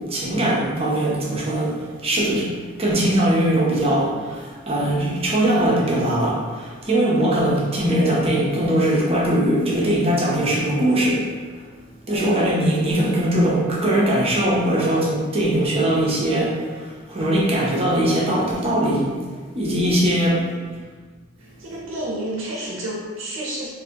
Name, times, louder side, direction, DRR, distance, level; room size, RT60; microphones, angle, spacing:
voice 1, 0.0-2.5 2.8-11.3 12.1-19.2 19.5-20.5, right 1 dB, 30° right, -5 dB, 0.7 m, -21 dB
voice 2, 21.4-23.7, right 1 dB, 90° right, -3 dB, 0.6 m, -31 dB
3.8 x 2.6 x 2.8 m, 1.5 s
head